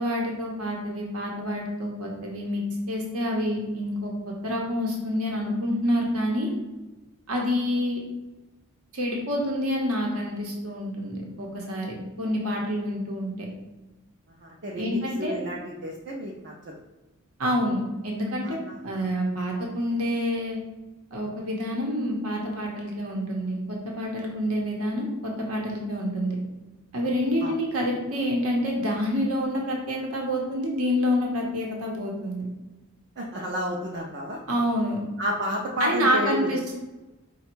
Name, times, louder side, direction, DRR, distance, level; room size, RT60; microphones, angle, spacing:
voice 1, 0.0-4.1 4.4-6.5 7.3-8.0 8.9-13.3 14.8-15.3 17.4-18.6 18.8-20.6 21.1-23.6 24.0-26.3 26.9-32.5 34.5-35.0 35.8-36.7, equal, 80° right, -1 dB, 0.9 m, -27 dB
voice 2, 14.4-16.7 18.4-19.1 27.4-27.5 33.2-34.4 35.2-36.5, equal, 50° right, -2 dB, 0.5 m, -31 dB
5.1 x 2.3 x 4.4 m, 1.1 s
head